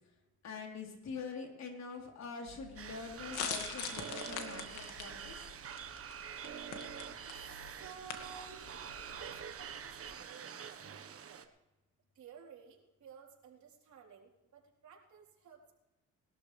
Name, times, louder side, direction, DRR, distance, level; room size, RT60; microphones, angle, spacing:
voice 1, 0.4-5.5, left 5 dB, 60° left, 1 dB, 3.8 m, -45 dB
sound 1, 2.5-10.2, left 7 dB, 90° left, 2.1 m, -45 dB
sound 2, 2.8-11.5, right 7 dB, 50° right, 1.3 m, -46 dB
voice 2, 7.3-11.4 12.2-15.7, right 7 dB, 70° right, -1 dB, 3.9 m, -55 dB
21.0 x 13.0 x 3.4 m, 0.97 s
cardioid pair, 90°, 30 cm